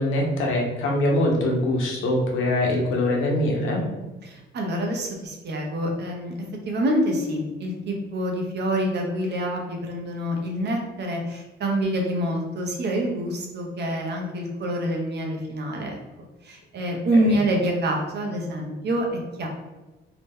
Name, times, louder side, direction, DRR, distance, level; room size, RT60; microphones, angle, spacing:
voice 1, 0.0-3.8, left 1 dB, 80° left, 0 dB, 0.8 m, -23 dB
voice 2, 4.2-6.3 6.6-16.0 16.4-19.5, equal, 60° right, 1 dB, 0.8 m, -26 dB
2.9 x 2.2 x 3.4 m, 1.1 s
cardioid pair, 90°, 20 cm